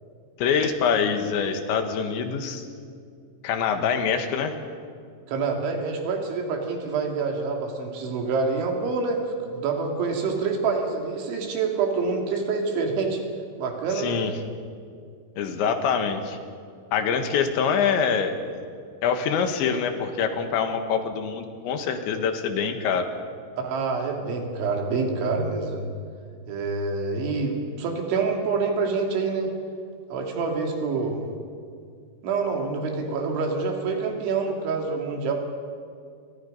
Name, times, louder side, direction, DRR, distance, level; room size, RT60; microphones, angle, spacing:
voice 1, 0.4-2.7 3.4-4.6 13.9-14.3 15.4-16.4 16.9-18.4 19.0-23.1, left 6 dB, 80° left, 6 dB, 3.9 m, -25 dB
voice 2, 5.3-13.2 13.6-14.2 23.6-25.9 26.5-29.5 30.1-31.2 32.2-35.3, right 4 dB, 80° right, 2 dB, 5.1 m, -26 dB
29.0 x 24.5 x 5.5 m, 2.2 s
omnidirectional pair, 5.3 m